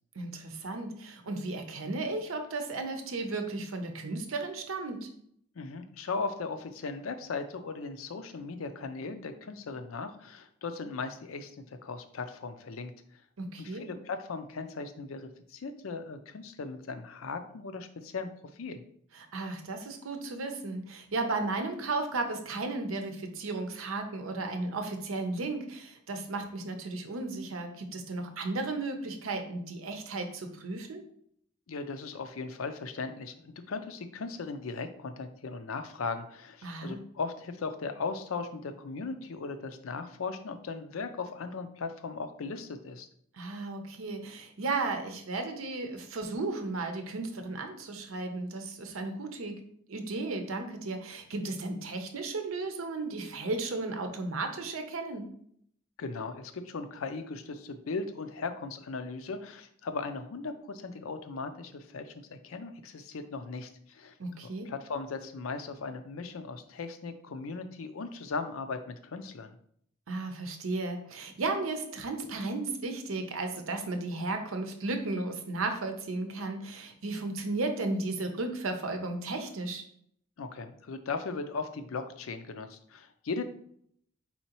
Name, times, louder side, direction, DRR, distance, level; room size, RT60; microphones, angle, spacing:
voice 1, 0.2-5.1 13.4-13.8 19.1-31.0 36.6-37.0 43.3-49.5 49.9-55.2 64.2-64.7 70.1-79.8, right 3 dB, 85° right, 6 dB, 0.7 m, -34 dB
voice 2, 5.6-12.9 13.6-18.8 31.7-43.1 56.0-64.1 64.7-69.6 80.4-83.4, left 4 dB, 80° left, 8 dB, 0.5 m, -38 dB
4.2 x 3.8 x 2.9 m, 0.67 s
head